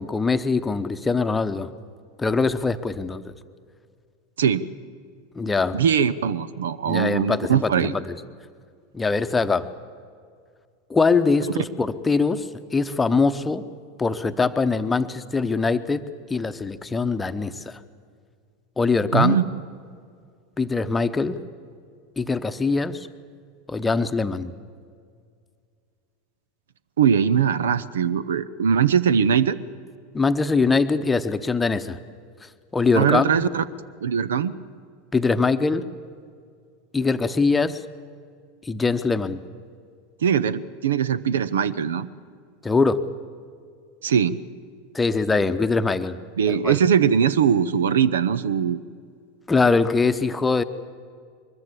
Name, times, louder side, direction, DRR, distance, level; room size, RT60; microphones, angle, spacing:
voice 1, 0.0-1.7 2.2-3.2 5.3-5.8 6.9-8.2 8.9-9.7 10.9-13.6 14.0-17.8 18.8-19.4 20.6-21.4 22.2-23.1 23.7-24.5 30.1-32.0 32.7-33.4 35.1-35.8 36.9-37.8 38.7-39.4 42.6-43.1 44.9-46.2 46.5-46.8 49.5-50.6, left 4 dB, 15° left, 10 dB, 0.9 m, -22 dB
voice 2, 5.7-8.0 19.1-19.4 27.0-29.6 32.9-33.6 34.0-34.5 40.2-42.1 44.0-44.4 46.4-48.8, right 8 dB, 70° right, 18 dB, 0.7 m, -21 dB
23.0 x 21.5 x 7.4 m, 2.2 s
figure-of-eight pair, 85°, 0 cm